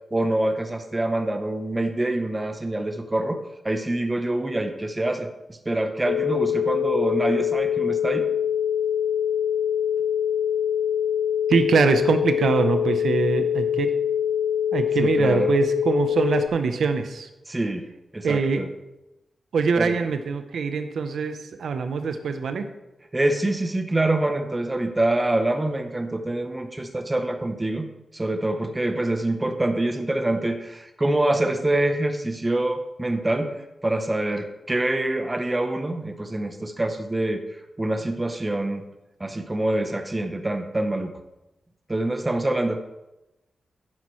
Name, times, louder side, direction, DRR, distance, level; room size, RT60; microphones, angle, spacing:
voice 1, 0.1-3.4 3.6-8.3 15.0-15.5 17.5-17.8 18.1-18.7 19.8-20.0 23.1-27.9 28.1-33.5 33.8-37.4 37.8-38.8 39.2-41.1 41.9-42.8, right 1 dB, 15° right, 7 dB, 0.8 m, -25 dB
sound 1, 6.1-16.5, left 9 dB, 80° left, 0.4 m, -24 dB
voice 2, 11.5-13.9 14.7-17.3 18.2-18.6 19.5-22.7, right 5 dB, 80° right, 8 dB, 0.7 m, -23 dB
10.5 x 9.7 x 3.2 m, 0.97 s
wide cardioid pair, 140°, 0 cm